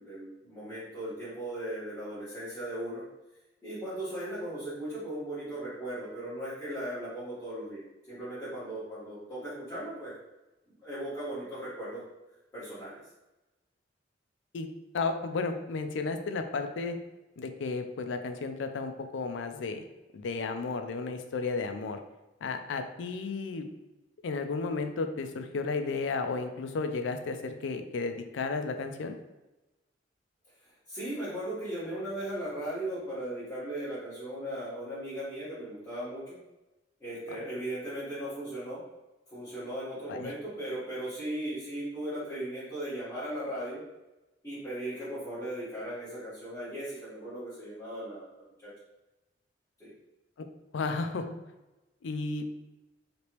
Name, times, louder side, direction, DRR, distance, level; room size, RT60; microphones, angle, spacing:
voice 1, 0.0-3.0 3.6-7.8 8.1-10.1 10.8-12.0 12.5-13.0 30.9-36.4 37.0-38.8 39.3-43.8 44.4-48.3 48.6-48.7 49.8-49.9, right 1 dB, 15° left, -14 dB, 1.2 m, -37 dB
voice 2, 14.9-16.9 17.4-19.9 20.1-22.0 22.4-23.7 24.2-29.1 40.1-40.3 50.4-50.5 50.7-51.3 52.0-52.5, left 4 dB, 75° left, 7 dB, 0.4 m, -33 dB
3.1 x 2.9 x 2.9 m, 1.0 s
head